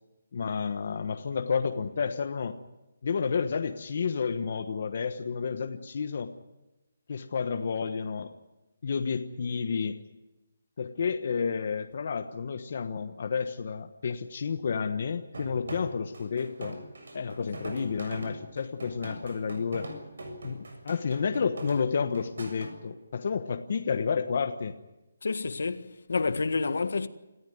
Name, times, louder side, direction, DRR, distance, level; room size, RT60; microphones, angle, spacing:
voice 1, 0.3-2.6 3.0-6.3 7.1-8.3 8.8-10.0 10.8-16.8 17.1-19.9 20.4-24.8, left 5 dB, 45° left, 1.2 m, -30 dB
sound 1, 15.3-22.7, right 1 dB, 80° right, 7.1 m, -41 dB
voice 2, 25.2-27.1, left 4 dB, 70° left, 1.7 m, -29 dB
27.5 x 14.5 x 9.4 m
hypercardioid pair, 175°, 0 cm